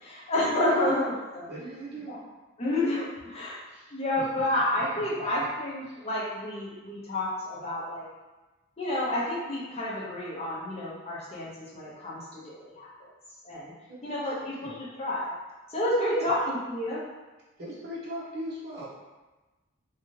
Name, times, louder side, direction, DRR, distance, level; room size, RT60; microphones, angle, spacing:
voice 1, 0.0-1.5 2.1-2.2 2.6-3.6 3.9-8.0 8.8-11.5 11.7-12.9 13.4-13.7 14.0-15.3 15.7-17.0, left 1 dB, 30° left, -6 dB, 0.6 m, -29 dB
voice 2, 1.5-2.2 3.7-4.4 4.7-5.3 5.9-6.0 13.9-14.8 16.1-16.3 17.6-18.9, equal, 50° right, -6 dB, 0.7 m, -41 dB
2.7 x 2.3 x 3.0 m, 1.2 s
head